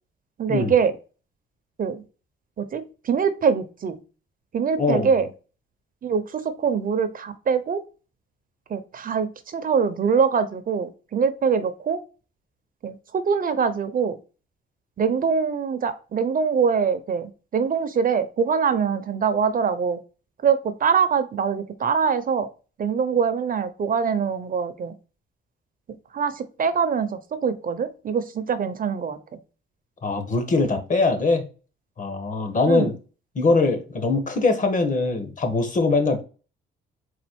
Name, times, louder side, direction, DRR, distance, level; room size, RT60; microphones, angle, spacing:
voice 1, 0.4-0.9 1.8-2.0 2.6-4.0 4.5-5.3 6.0-7.8 8.7-12.0 12.8-14.2 15.0-20.0 20.4-22.5 22.8-24.9 26.1-29.2 32.7-32.9, right 6 dB, 45° right, 0.7 m, -23 dB
voice 2, 4.8-5.1 30.0-31.4 32.0-33.0 33.3-36.2, left 3 dB, 40° left, 1.3 m, -22 dB
4.2 x 2.4 x 4.5 m
cardioid pair, 90°, 20 cm